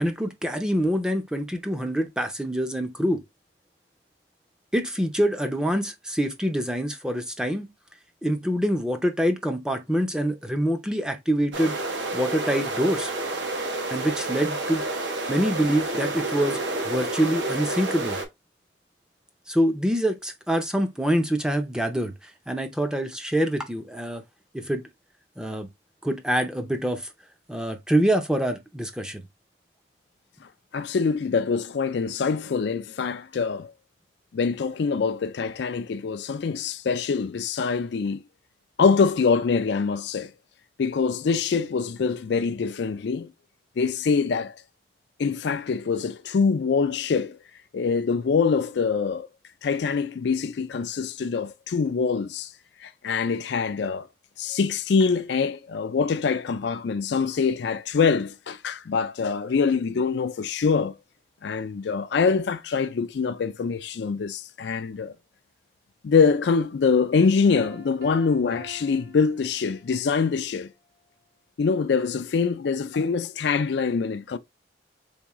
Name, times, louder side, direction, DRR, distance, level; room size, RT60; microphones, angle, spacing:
voice 1, 0.0-3.2 4.7-7.7 8.2-11.8 12.1-13.1 13.9-14.8 15.3-16.6 16.8-18.2 19.5-24.2 24.5-24.8 25.4-25.7 26.0-27.1 27.5-29.2, equal, 5° right, 0.5 m, -25 dB
sound 1, 11.5-18.2, right 2 dB, 80° right, 1.0 m, -29 dB
voice 2, 30.7-33.7 34.3-38.2 38.8-40.3 40.8-43.3 43.8-44.6 45.2-47.4 47.7-49.3 49.6-52.5 52.8-54.1 54.4-60.9 61.4-65.1 66.0-70.7 71.6-74.4, left 5 dB, 70° left, 0.4 m, -24 dB
Piano, 67.5-70.1, equal, 55° right, 1.1 m, -45 dB
3.6 x 3.6 x 3.0 m
head